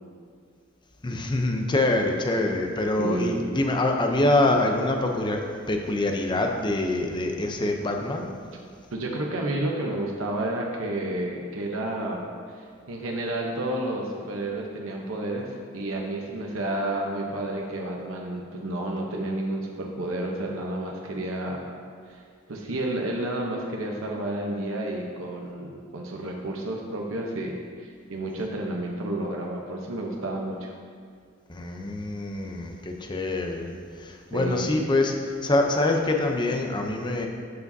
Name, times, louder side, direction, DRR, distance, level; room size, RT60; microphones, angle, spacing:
voice 1, 1.0-8.3 31.5-33.7 34.0-35.1 35.4-37.3, left 2 dB, 25° left, 3 dB, 0.6 m, -25 dB
voice 2, 3.0-3.5 8.9-12.2 12.9-15.5 15.7-21.7 22.1-22.2 22.5-30.7 34.3-34.7, right 1 dB, 80° right, 0 dB, 0.8 m, -30 dB
12.5 x 4.9 x 2.7 m, 2.1 s
head